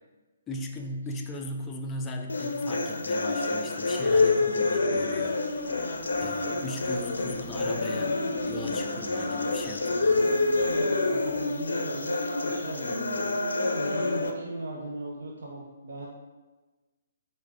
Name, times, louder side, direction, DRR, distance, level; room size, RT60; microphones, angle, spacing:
voice 1, 0.5-5.9 6.2-10.3, left 2 dB, 15° left, 2 dB, 0.4 m, -38 dB
sound 1, 2.3-14.3, left 3 dB, 80° left, 0.4 m, -27 dB
Car passing by / Traffic noise roadway noise / Engine, 4.8-12.1, right 2 dB, 25° right, 0.9 m, -45 dB
voice 2, 10.5-13.3 13.7-16.1, right 1 dB, 65° right, -4 dB, 0.6 m, -37 dB
4.8 x 2.1 x 3.5 m, 1.2 s
hypercardioid pair, 145°, 0 cm